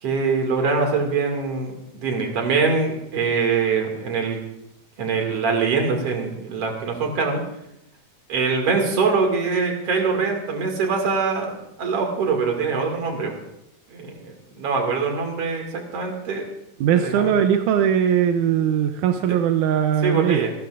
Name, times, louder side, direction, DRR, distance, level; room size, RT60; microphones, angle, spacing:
voice 1, 0.0-4.4 5.0-7.4 8.3-13.4 13.9-16.5 16.9-17.3 19.3-19.4 20.0-20.5, right 4 dB, 55° right, 2 dB, 3.1 m, -23 dB
voice 2, 16.8-20.5, right 9 dB, 85° right, 6 dB, 2.2 m, -20 dB
26.5 x 12.0 x 2.5 m, 0.81 s
omnidirectional pair, 3.5 m